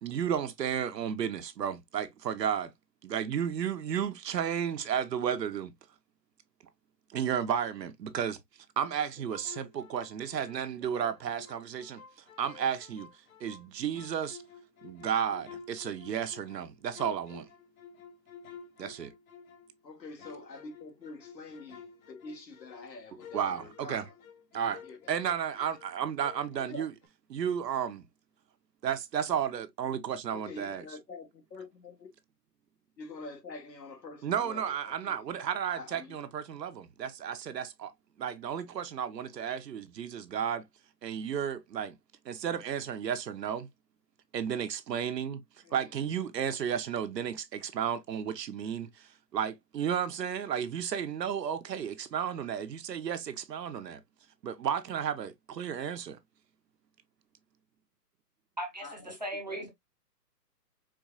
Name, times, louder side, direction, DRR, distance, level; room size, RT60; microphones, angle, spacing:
voice 1, 0.0-2.7 3.0-5.7 7.1-8.4 8.8-12.0 12.4-13.1 13.4-14.4 14.8-17.5 18.8-19.1 23.3-24.1 24.5-24.8 25.1-26.9 27.3-28.0 28.8-30.8 34.2-37.9 38.2-40.7 41.0-42.0 42.2-43.7 44.3-45.4 45.7-54.0 54.4-56.2, right 8 dB, 80° right, 0.8 m, -33 dB
sound 1, 8.8-10.6 10.9-13.7 13.9-19.8 20.2-25.9 26.2-27.1, left 6 dB, 60° left, 0.6 m, -51 dB
voice 2, 19.8-24.1 24.5-25.0 26.7-26.9 30.3-32.1 33.0-35.2 35.7-36.1 45.6-46.0 58.8-59.2 59.5-59.7, left 3 dB, 90° left, 1.5 m, -46 dB
voice 3, 58.6-59.7, right 1 dB, 30° right, 0.5 m, -38 dB
4.6 x 2.3 x 2.3 m
hypercardioid pair, 170°, 49 cm